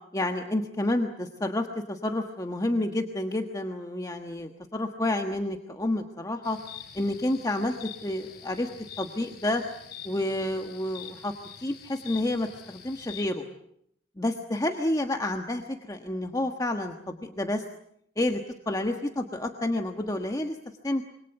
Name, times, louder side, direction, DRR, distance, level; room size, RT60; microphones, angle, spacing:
voice 1, 0.1-6.6 6.9-8.7 9.0-9.6 10.0-11.3 11.6-13.4 14.2-17.6 18.2-18.4 18.7-20.6 20.8-21.0, left 1 dB, 20° left, 4 dB, 1.4 m, -29 dB
sound 1, 6.4-13.2, left 9 dB, 55° left, 5.4 m, -46 dB
26.5 x 24.5 x 8.1 m, 0.73 s
head